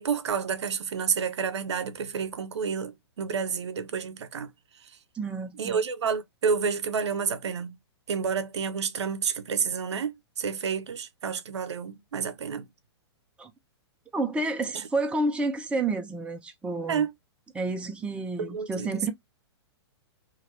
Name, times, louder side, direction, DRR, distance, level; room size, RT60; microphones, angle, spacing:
voice 1, 0.0-4.5 5.6-7.7 8.1-12.7 16.9-17.1 18.4-19.1, right 6 dB, 85° right, 0.6 m, -29 dB
voice 2, 5.1-5.8 13.4-13.5 14.1-17.0 17.5-19.1, right 2 dB, 10° right, 0.6 m, -30 dB
2.8 x 2.5 x 3.1 m
hypercardioid pair, 125°, 14 cm